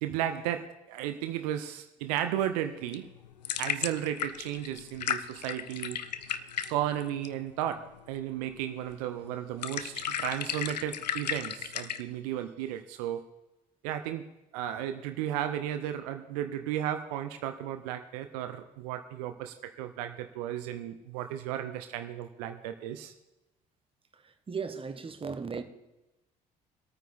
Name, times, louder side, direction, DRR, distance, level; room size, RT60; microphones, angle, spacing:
voice 1, 0.0-3.1 3.6-6.0 6.7-7.8 8.1-13.2 13.8-14.2 14.5-23.1, right 11 dB, 70° right, 0.7 m, -34 dB
sound 1, 2.7-12.0, left 8 dB, 85° left, 0.5 m, -36 dB
voice 2, 24.2-25.6, right 5 dB, 25° right, 1.2 m, -36 dB
22.5 x 9.0 x 3.5 m
figure-of-eight pair, 55°, 21 cm